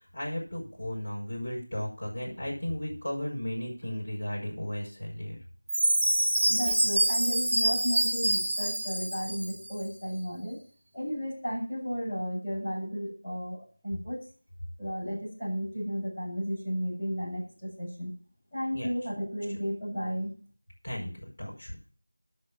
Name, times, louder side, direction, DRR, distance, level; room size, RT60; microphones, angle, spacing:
voice 1, 0.1-5.4 18.7-18.9 19.5-19.6 20.8-21.8, left 1 dB, 25° left, -7 dB, 5.0 m, -35 dB
Chime, 5.7-9.7, right 1 dB, 15° right, 2.6 m, -26 dB
voice 2, 6.5-10.6 10.9-14.2 14.8-18.1 18.5-20.3, equal, ahead, -20 dB, 6.3 m, -33 dB
10.0 x 6.4 x 7.3 m, 0.40 s
figure-of-eight pair, 180°, 0 cm